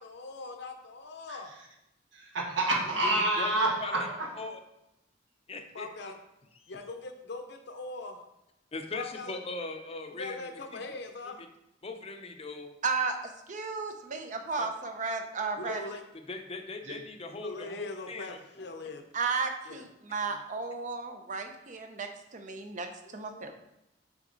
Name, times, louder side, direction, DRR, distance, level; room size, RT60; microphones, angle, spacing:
voice 1, 0.0-1.5 5.7-6.2 6.7-8.2 8.9-9.4 9.9-11.5 15.6-16.0 17.3-19.1 19.7-19.8 20.3-20.4 23.0-23.5, left 3 dB, 65° left, 5 dB, 0.8 m, -41 dB
voice 2, 2.1-4.3 16.8-16.9, right 2 dB, 80° right, -1 dB, 1.5 m, -28 dB
voice 3, 3.0-4.0 4.4-4.6 5.5-5.9 8.7-10.8 11.8-12.7 16.3-18.4, left 3 dB, 35° left, 5 dB, 0.7 m, -39 dB
voice 4, 12.8-15.8 19.1-22.9 23.1-23.5, right 4 dB, 45° right, 5 dB, 0.7 m, -34 dB
6.1 x 4.9 x 3.9 m, 0.88 s
head